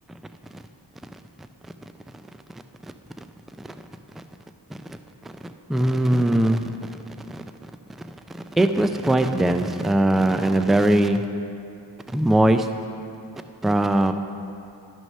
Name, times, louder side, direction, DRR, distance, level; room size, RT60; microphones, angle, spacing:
voice 1, 4.9-5.3 5.7-6.7 7.3-7.4 8.3-11.2 12.1-12.7 13.6-14.1, right 1 dB, ahead, 8 dB, 0.4 m, -20 dB
11.0 x 6.1 x 5.4 m, 2.7 s
cardioid pair, 50°, 47 cm